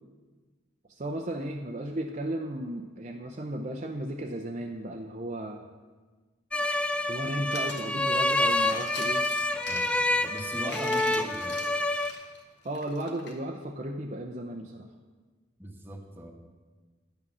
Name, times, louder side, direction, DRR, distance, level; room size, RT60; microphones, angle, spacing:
voice 1, 0.9-5.6 7.1-9.3 12.6-14.9, right 1 dB, 40° right, 3 dB, 0.6 m, -35 dB
sound 1, 6.5-12.1, left 2 dB, 5° left, 0.3 m, -27 dB
sound 2, 6.6-13.3, left 4 dB, 60° left, 1.4 m, -43 dB
voice 2, 9.7-11.7 15.6-16.3, right 1 dB, 10° right, 1 dB, 1.2 m, -40 dB
10.5 x 8.5 x 6.1 m, 1.4 s
head